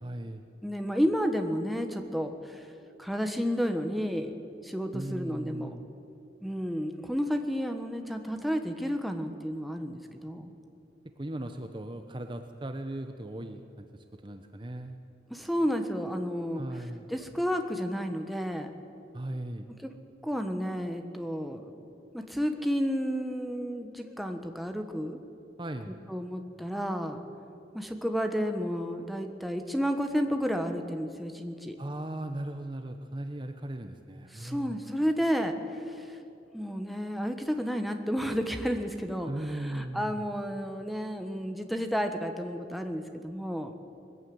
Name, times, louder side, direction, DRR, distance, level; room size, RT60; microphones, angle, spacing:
voice 1, 0.0-0.4 4.9-5.8 11.2-13.9 14.2-15.0 16.5-17.1 19.1-19.7 25.6-25.9 31.8-34.8 39.3-40.2, right 1 dB, 25° right, 6 dB, 0.8 m, -37 dB
voice 2, 0.6-2.6 3.0-4.3 4.6-5.7 6.4-10.5 15.3-16.6 17.1-18.7 19.8-19.9 20.2-21.7 22.1-25.2 26.1-27.2 27.7-31.8 34.3-36.2 36.5-43.7, equal, ahead, 5 dB, 1.3 m, -31 dB
21.0 x 15.0 x 9.5 m, 2.7 s
head